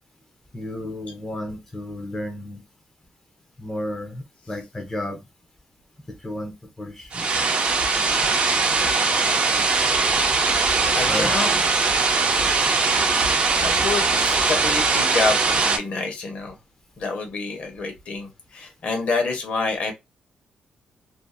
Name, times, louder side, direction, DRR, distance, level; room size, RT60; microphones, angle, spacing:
voice 1, 0.5-2.6 3.6-5.2 6.1-7.3 11.1-11.4, left 1 dB, 10° left, 0.5 m, -32 dB
sound 1, 7.1-15.8, right 4 dB, 40° right, 0.5 m, -21 dB
voice 2, 10.9-11.6 13.6-16.6 17.0-19.9, left 3 dB, 50° left, 0.9 m, -27 dB
2.6 x 2.4 x 2.4 m
wide cardioid pair, 175°, 3 cm